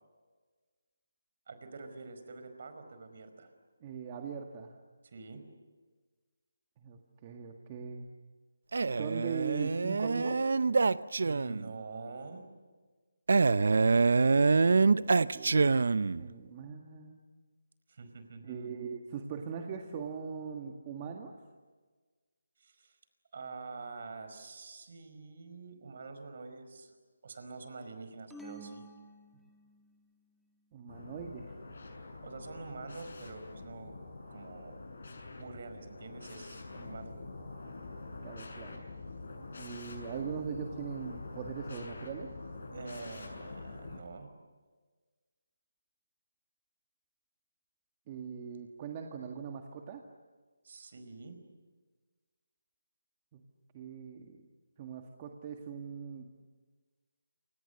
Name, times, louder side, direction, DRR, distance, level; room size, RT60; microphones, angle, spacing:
voice 1, 1.5-3.5 5.0-5.4 11.2-12.4 17.9-18.7 22.6-23.0 23.3-26.9 27.2-28.8 32.2-34.0 34.3-34.8 35.4-37.2 42.7-44.3 50.6-51.4, right 3 dB, 50° right, 8 dB, 4.9 m, -46 dB
voice 2, 3.8-4.7 6.8-8.1 9.0-10.5 14.6-17.2 18.4-21.3 29.3-29.4 30.7-31.5 38.2-38.8 39.6-42.3 48.1-50.0 53.3-53.4 53.7-54.4 54.8-56.3, right 6 dB, 25° right, 2 dB, 1.8 m, -41 dB
Male speech man speaking, 8.7-11.7 13.3-16.3, right 4 dB, 65° right, 0.7 m, -26 dB
sound 1, 28.3-30.0, right 2 dB, ahead, 1.8 m, -49 dB
sound 2, 30.9-44.0, left 3 dB, 60° left, 7.1 m, -46 dB
28.5 x 26.0 x 6.8 m, 1.4 s
figure-of-eight pair, 165°, 0 cm